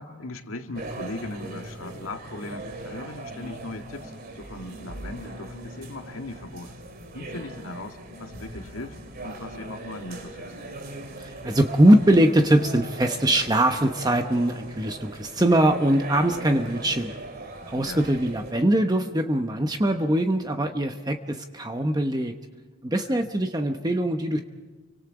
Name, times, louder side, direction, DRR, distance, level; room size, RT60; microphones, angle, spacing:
voice 1, 0.0-6.7 7.1-9.0 9.2-10.5 17.8-18.1 23.1-23.3, left 2 dB, 75° left, 5 dB, 2.0 m, -38 dB
sound 1, 0.7-18.5, right 2 dB, 45° right, 2.5 m, -40 dB
voice 2, 11.2-17.2 17.7-22.3 22.8-24.4, right 1 dB, 20° right, 5 dB, 1.0 m, -22 dB
29.5 x 25.0 x 4.9 m, 1.4 s
head